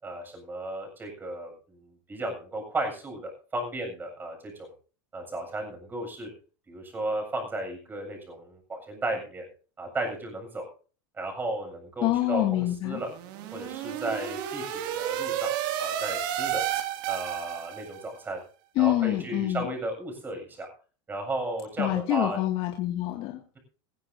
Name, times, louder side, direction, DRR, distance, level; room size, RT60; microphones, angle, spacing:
voice 1, 0.0-4.7 5.1-6.3 6.7-9.5 9.8-10.6 11.2-13.1 13.5-15.5 15.8-16.6 17.1-18.4 18.8-20.7 21.1-22.4, right 2 dB, 15° right, 3 dB, 7.5 m, -34 dB
voice 2, 12.0-13.0 18.8-19.7 21.8-23.4, left 15 dB, 50° left, 2 dB, 2.2 m, -26 dB
sound 1, 13.0-18.0, right 10 dB, 65° right, 2.5 m, -31 dB
20.5 x 15.5 x 2.8 m, 0.38 s
supercardioid pair, 140°, 12 cm